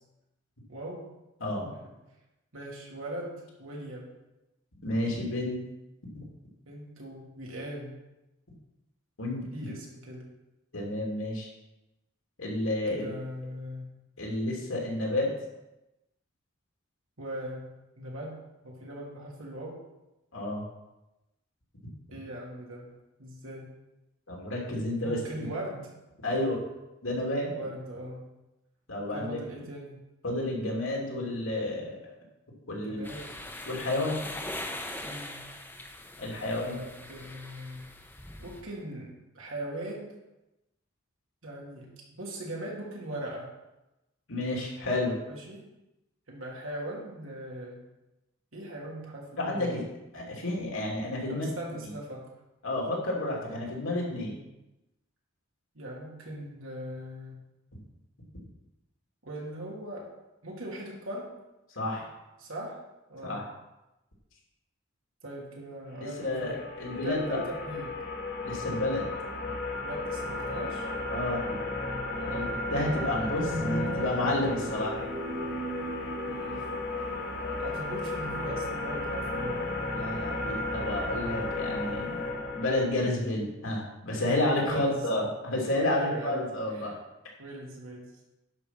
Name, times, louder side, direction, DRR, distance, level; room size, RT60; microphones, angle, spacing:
voice 1, 0.7-1.1 1.8-1.9 2.5-4.2 6.7-8.0 9.5-10.3 12.9-13.9 17.2-18.4 18.6-19.8 22.1-23.7 25.0-25.9 27.5-28.3 29.1-30.0 32.8-33.3 35.0-35.4 36.2-37.9 38.4-40.1 41.4-43.5 45.3-45.6 46.3-47.8 48.5-49.8 51.3-52.3 54.1-54.4 55.7-57.4 59.2-60.1 60.4-61.3 62.4-62.8 63.1-63.4 65.2-66.6 67.0-68.0 69.7-70.9 72.1-72.6 73.2-73.7 76.2-76.6 77.6-79.7 84.6-85.1 85.9-86.9 87.4-88.2, right 1 dB, 80° right, -3 dB, 2.8 m, -40 dB
voice 2, 4.8-5.5 6.1-6.2 9.2-9.7 10.7-11.5 12.4-13.1 14.2-15.3 20.3-20.6 24.3-25.2 26.2-26.6 27.0-27.5 28.9-29.4 30.2-32.1 32.7-33.0 33.6-34.2 36.2-36.8 44.3-45.2 49.4-49.8 50.1-51.5 51.8-51.9 52.6-54.3 57.7-57.8 61.7-62.1 63.2-63.4 66.0-67.4 68.4-69.1 71.1-71.6 72.3-75.0 79.9-87.0, left 1 dB, 80° left, -2 dB, 2.9 m, -30 dB
sound 1, 33.0-38.6, left 1 dB, 10° left, 0.9 m, -41 dB
sound 2, 66.1-82.9, left 2 dB, 50° left, 1.3 m, -34 dB
sound 3, 73.5-82.3, right 1 dB, 45° right, 0.8 m, -40 dB
10.5 x 5.4 x 5.9 m, 0.97 s
head